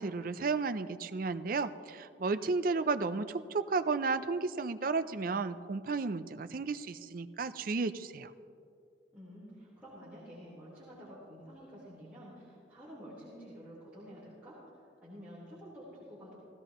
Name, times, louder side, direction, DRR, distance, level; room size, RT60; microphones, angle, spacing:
voice 1, 0.0-8.3, right 4 dB, 50° right, 12 dB, 0.4 m, -33 dB
voice 2, 9.1-16.4, equal, 10° right, -12 dB, 3.8 m, -50 dB
18.0 x 16.0 x 3.0 m, 2.5 s
head